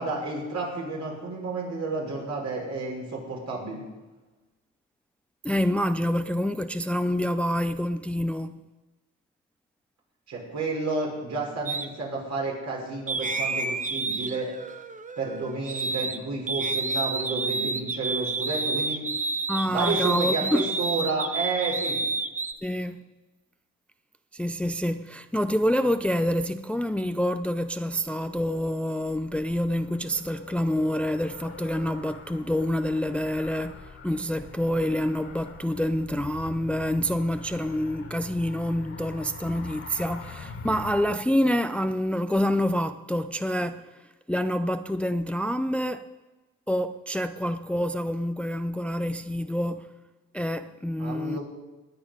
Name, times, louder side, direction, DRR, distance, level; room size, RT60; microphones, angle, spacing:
voice 1, 0.0-3.8 10.3-14.5 15.2-19.0 19.7-22.0 51.0-51.4, right 3 dB, 65° right, 6.0 m, -31 dB
voice 2, 5.4-8.6 19.5-20.7 22.6-23.0 24.3-43.8 44.3-46.1 46.7-49.9 50.3-51.4, equal, 5° left, 0.5 m, -27 dB
sound 1, 11.7-11.9 13.1-16.2 16.5-22.5, right 3 dB, 25° right, 0.9 m, -29 dB
Car, 27.2-41.2, left 4 dB, 45° left, 2.0 m, -44 dB
20.0 x 8.8 x 5.3 m
cardioid pair, 90°, 30 cm